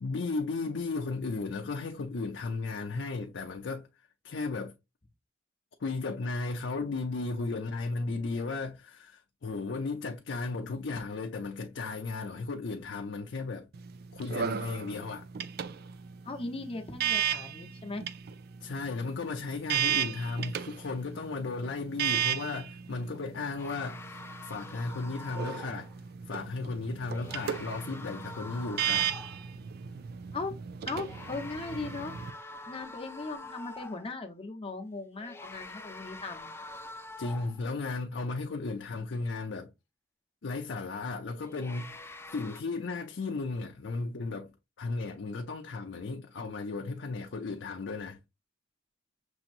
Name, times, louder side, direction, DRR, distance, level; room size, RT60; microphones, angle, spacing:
voice 1, 0.0-3.9 4.2-4.7 5.8-13.7 14.1-15.3 18.6-25.9 26.3-29.1 37.2-39.7 40.4-48.2, left 3 dB, 65° left, 0.5 m, -35 dB
sound 1, 13.7-32.3, right 9 dB, 55° right, 0.4 m, -35 dB
voice 2, 16.2-18.0 30.3-30.6 30.8-32.1 32.7-36.5, left 3 dB, 30° left, 0.8 m, -38 dB
sound 2, 23.6-25.9 27.1-29.5 30.9-34.2 35.1-37.8 41.3-42.6, left 2 dB, 15° left, 0.4 m, -45 dB
6.1 x 2.9 x 2.5 m
head